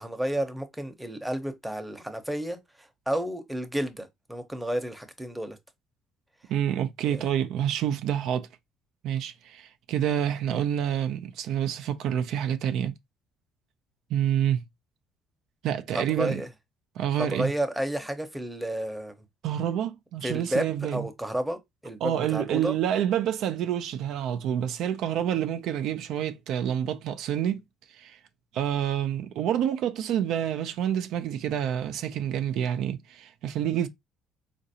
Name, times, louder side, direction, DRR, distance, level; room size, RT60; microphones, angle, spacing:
voice 1, 0.0-5.6 7.0-7.3 15.9-16.5 17.2-19.2 20.2-22.8, right 1 dB, 5° right, 0.7 m, -31 dB
voice 2, 6.5-8.5 9.0-12.9 14.1-14.6 15.6-16.4 17.0-17.5 19.4-21.1 22.0-27.6 27.9-28.2 28.5-33.9, right 10 dB, 75° right, 0.4 m, -28 dB
3.9 x 2.5 x 2.7 m
cardioid pair, 100°, 0 cm